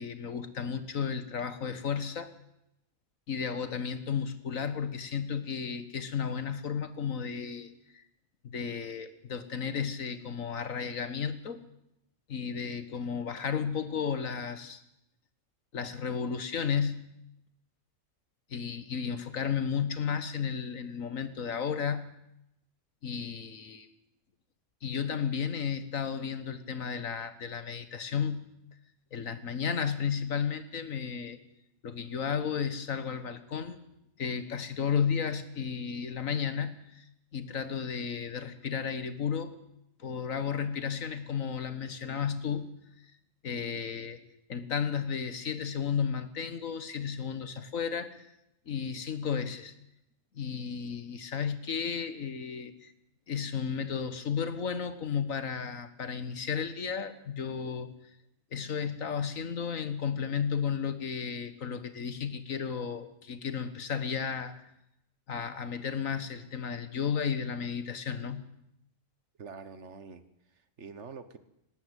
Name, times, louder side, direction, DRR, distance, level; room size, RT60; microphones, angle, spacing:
voice 1, 0.0-2.3 3.3-8.0 8.4-11.6 12.3-14.8 15.7-16.9 18.5-22.0 23.0-23.9 24.8-28.4 29.1-31.4 31.8-33.8 34.2-37.1 37.3-39.5 40.0-42.7 43.4-44.2 44.5-48.3 48.7-49.7 50.3-52.9 53.3-57.9 58.5-64.6 65.3-68.4, left 7 dB, 90° left, 12 dB, 2.0 m, -33 dB
voice 2, 69.4-71.4, right 5 dB, 60° right, 13 dB, 1.6 m, -46 dB
18.5 x 18.5 x 8.3 m, 0.83 s
omnidirectional pair, 1.3 m